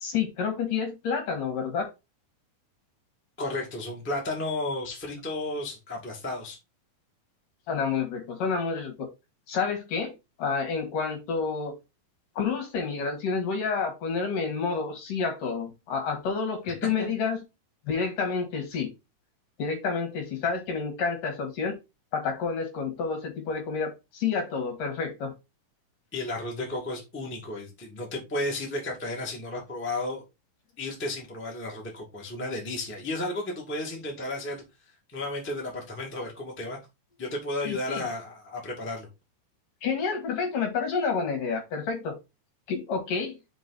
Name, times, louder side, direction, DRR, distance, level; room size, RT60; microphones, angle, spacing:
voice 1, 0.0-1.9 7.7-9.1 9.5-11.8 12.4-17.4 17.9-18.9 19.6-21.8 22.1-25.3 37.6-38.0 39.8-42.2 42.7-43.4, left 5 dB, 65° left, 3.1 m, -29 dB
voice 2, 3.4-6.6 16.8-17.1 26.1-30.2 30.8-34.6 35.1-36.8 37.2-39.1, left 2 dB, 5° left, 1.1 m, -33 dB
6.1 x 4.6 x 4.1 m
omnidirectional pair, 4.3 m